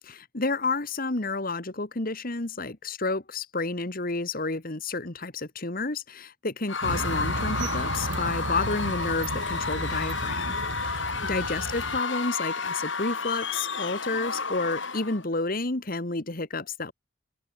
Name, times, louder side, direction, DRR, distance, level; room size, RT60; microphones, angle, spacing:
voice 1, 0.1-16.9, left 3 dB, 45° left, 1.6 m, -30 dB
Screaming / Cheering / Crowd, 6.7-15.2, left 4 dB, 70° left, 6.0 m, -31 dB
sound 1, 6.8-12.0, right 2 dB, 65° right, 1.2 m, -34 dB
open air
head